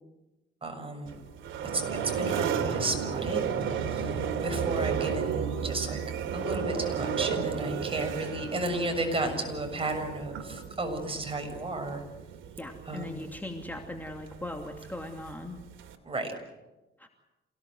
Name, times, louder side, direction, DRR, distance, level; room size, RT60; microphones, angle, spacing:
voice 1, 0.6-1.2 1.7-1.8 2.2-3.4 3.7-6.0 6.3-12.0 12.9-13.2 16.0-16.3, right 2 dB, 25° right, 4 dB, 7.0 m, -33 dB
sound 1, 1.1-16.0, right 7 dB, 80° right, 2.8 m, -33 dB
voice 2, 7.3-7.8 12.6-15.6 17.0-17.1, left 1 dB, 10° left, 3 dB, 2.7 m, -40 dB
28.0 x 18.0 x 7.9 m, 1.0 s
cardioid pair, 90°, 20 cm